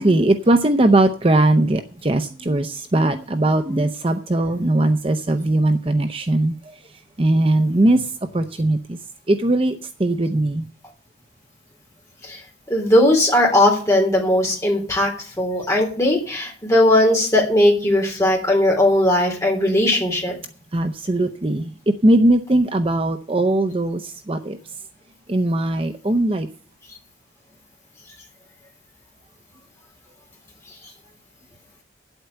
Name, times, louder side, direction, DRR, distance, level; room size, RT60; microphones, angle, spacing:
voice 1, 0.0-6.5 7.2-8.0 8.3-9.0 9.3-10.7 20.7-21.7 22.0-24.6 25.3-26.5, right 1 dB, 30° right, 8 dB, 0.6 m, -19 dB
voice 2, 12.7-15.1 15.4-20.3, left 1 dB, 15° left, -1 dB, 3.5 m, -18 dB
9.3 x 8.1 x 7.8 m, 0.40 s
head